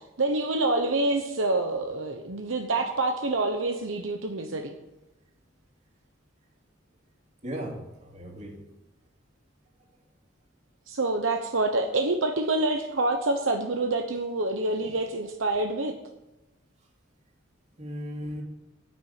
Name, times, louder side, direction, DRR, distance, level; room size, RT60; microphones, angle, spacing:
voice 1, 0.2-4.7 10.9-16.0, right 2 dB, 75° right, 5 dB, 1.0 m, -27 dB
voice 2, 7.4-8.7 14.8-14.9 17.8-18.4, equal, 35° right, 1 dB, 2.7 m, -37 dB
10.0 x 8.6 x 8.3 m, 0.97 s
head